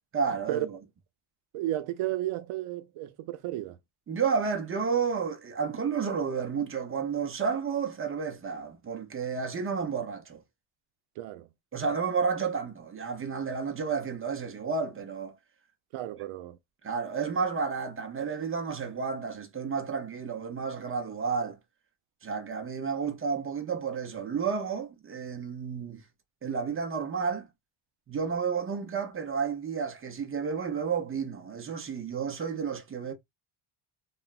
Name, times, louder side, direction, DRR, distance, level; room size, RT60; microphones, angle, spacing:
voice 1, 0.1-0.6 4.1-10.4 11.7-15.4 16.2-16.3 16.8-21.6 22.2-26.0 26.4-27.5 28.1-33.1, right 5 dB, 30° right, 0.5 m, -31 dB
voice 2, 1.5-3.8 11.2-11.5 15.9-16.6, right 14 dB, 80° right, 0.6 m, -33 dB
3.0 x 2.1 x 2.3 m
cardioid pair, 110°, 49 cm